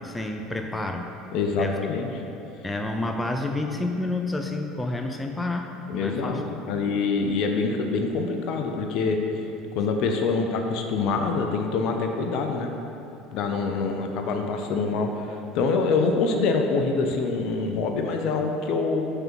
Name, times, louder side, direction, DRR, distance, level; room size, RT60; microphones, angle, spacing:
voice 1, 0.0-1.1 1.6-1.8 2.6-6.4, left 2 dB, 15° left, 4 dB, 0.5 m, -29 dB
voice 2, 1.3-2.1 5.9-9.2 9.7-12.7 13.3-19.1, left 4 dB, 65° left, 4 dB, 0.5 m, -25 dB
5.6 x 3.6 x 5.5 m, 2.8 s
hypercardioid pair, 85°, 0 cm